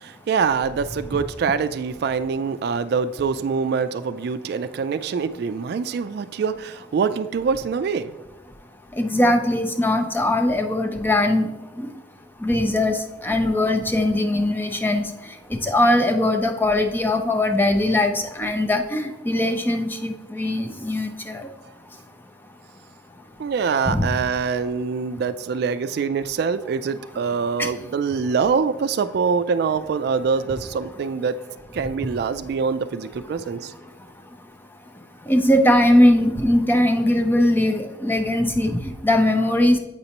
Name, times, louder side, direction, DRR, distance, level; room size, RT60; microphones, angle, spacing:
voice 1, 0.0-8.2 23.4-31.4 31.7-33.7, right 5 dB, 60° right, 11 dB, 0.3 m, -24 dB
voice 2, 9.0-11.5 11.8-11.9 12.4-15.1 15.5-21.5 23.9-24.1 27.6-27.7 35.3-39.8, left 1 dB, 10° left, 5 dB, 0.5 m, -20 dB
8.0 x 5.3 x 2.9 m, 1.1 s
head